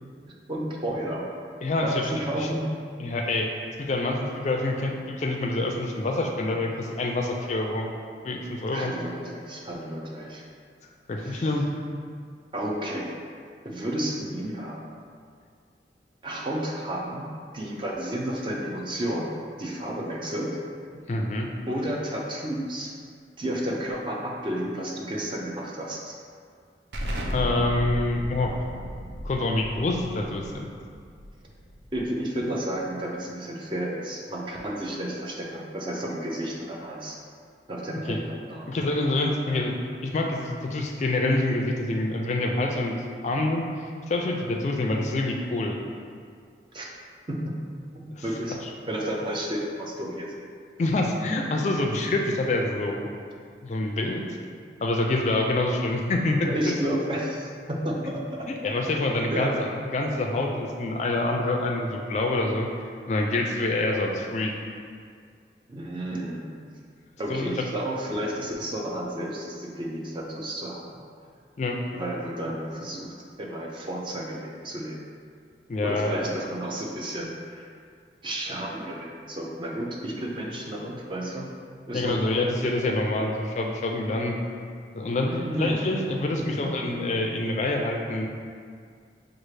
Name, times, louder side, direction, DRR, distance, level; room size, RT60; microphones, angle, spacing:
voice 1, 0.5-1.3 1.8-2.7 8.7-10.4 11.2-11.5 12.5-13.1 13.6-14.8 16.2-17.3 17.5-20.6 21.7-22.9 23.4-26.2 31.9-37.2 37.7-38.7 46.7-46.9 47.3-47.6 47.9-48.6 48.9-50.3 56.4-58.5 58.9-59.0 59.3-59.6 65.7-66.7 67.2-71.0 71.9-75.0 75.8-77.7 78.2-81.5 81.9-82.4 85.2-85.9 86.2-86.8, right 1 dB, 30° right, -2 dB, 0.5 m, -32 dB
voice 2, 1.6-2.0 2.4-2.5 3.0-7.9 8.2-8.9 11.1-11.7 21.1-21.5 27.3-28.6 29.2-30.7 38.1-38.2 38.7-39.7 40.0-43.0 43.2-45.8 48.1-48.2 50.8-53.1 53.6-54.2 54.8-56.7 58.6-62.7 63.1-64.5 67.3-67.6 71.6-71.8 75.7-76.2 81.9-84.3 84.9-85.3 85.6-88.3, left 2 dB, 40° left, 1 dB, 0.3 m, -26 dB
Explosion, 26.9-32.3, equal, 75° right, 0.5 m, -35 dB
6.0 x 2.4 x 3.2 m, 2.1 s
head